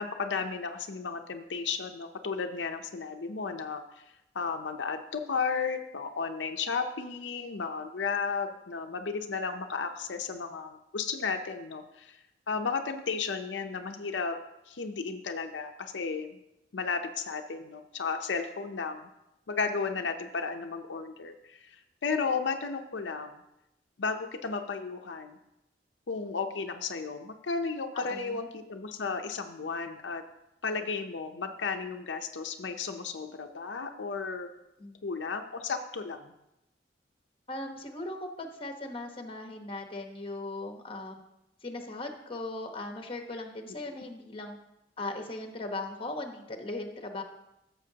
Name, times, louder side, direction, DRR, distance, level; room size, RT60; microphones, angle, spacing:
voice 1, 0.0-4.0 4.3-12.2 12.5-14.4 14.7-16.4 16.7-19.1 19.5-23.4 24.0-25.4 26.1-30.2 30.6-34.5 35.0-36.3 43.8-44.1, left 5 dB, 80° left, 5 dB, 0.6 m, -34 dB
voice 2, 27.9-28.5 34.8-35.0 37.5-41.2 41.6-44.6 45.0-47.2, left 2 dB, 30° left, 4 dB, 1.1 m, -38 dB
15.0 x 7.0 x 2.8 m, 0.87 s
head